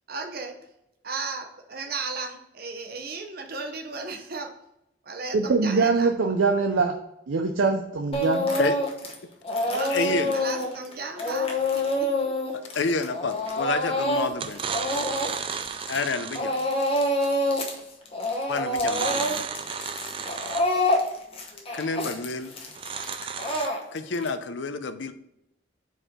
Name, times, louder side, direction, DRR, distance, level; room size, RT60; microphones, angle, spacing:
voice 1, 0.1-0.6 1.0-4.5 5.0-6.1 8.5-8.6 9.7-12.3, right 3 dB, 50° right, 5 dB, 0.9 m, -35 dB
voice 2, 5.3-6.9 7.3-8.5, right 4 dB, 85° right, 3 dB, 0.5 m, -23 dB
Speech / Crying sobbing, 8.1-9.1 9.4-16.1 16.3-17.8 18.1-24.3, left 1 dB, 30° left, 1.0 m, -27 dB
voice 3, 9.9-10.3 12.7-14.6 15.9-16.7 18.5-19.4 21.7-22.5 23.9-25.1, left 4 dB, 75° left, 10 dB, 0.6 m, -29 dB
sound 1, 13.5-13.8 14.3-16.6 18.8-20.8 22.7-23.7, right 6 dB, 30° right, 0.3 m, -33 dB
4.7 x 4.4 x 5.0 m, 0.82 s
head